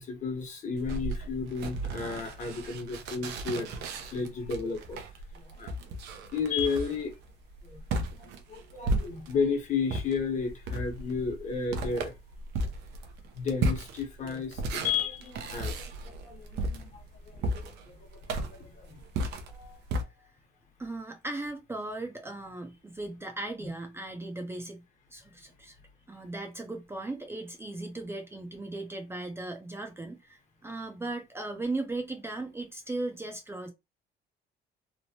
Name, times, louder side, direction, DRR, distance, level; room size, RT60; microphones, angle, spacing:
voice 1, 0.0-3.8 4.1-5.0 5.3-5.7 6.3-7.1 7.6-7.8 8.1-12.1 13.3-18.0 18.3-19.0 23.6-23.7, left 5 dB, 45° left, 1.0 m, -33 dB
sound 1, 0.8-9.5 9.9-20.0, right 2 dB, 85° right, 0.6 m, -35 dB
voice 2, 19.5-20.3 20.8-24.8 25.1-25.8 26.1-33.7, right 2 dB, 15° right, 0.5 m, -37 dB
3.1 x 2.1 x 2.7 m
cardioid pair, 110°, 17 cm